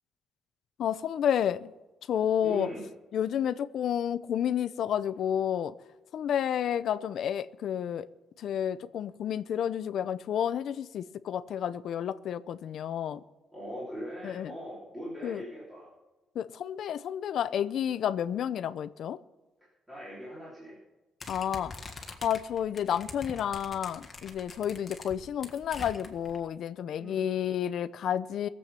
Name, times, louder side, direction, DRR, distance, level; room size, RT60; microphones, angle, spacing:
voice 1, 0.8-1.7 2.1-2.7 3.1-5.7 6.1-8.1 8.4-13.2 14.2-14.5 15.2-15.4 16.3-19.2 21.3-21.7 22.2-28.5, left 9 dB, 60° left, 0.6 m, -30 dB
voice 2, 2.4-2.9 13.5-15.9 19.9-20.8 26.9-27.3, equal, 10° right, 3.6 m, -40 dB
sound 1, 21.2-26.4, left 3 dB, 20° left, 1.5 m, -44 dB
21.5 x 7.7 x 5.7 m
cardioid pair, 170°, 0 cm